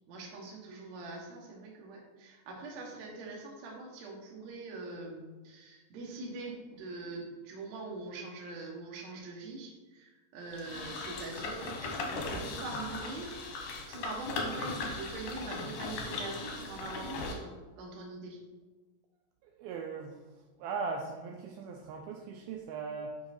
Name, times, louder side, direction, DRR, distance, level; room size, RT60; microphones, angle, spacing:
voice 1, 0.1-13.4 13.9-18.4, right 3 dB, 65° right, -1 dB, 1.9 m, -43 dB
sound 1, 10.5-17.3, left 3 dB, 70° left, 2.0 m, -38 dB
voice 2, 19.4-23.2, right 4 dB, 85° right, 2 dB, 2.2 m, -39 dB
7.3 x 5.6 x 4.3 m, 1.3 s
omnidirectional pair, 4.8 m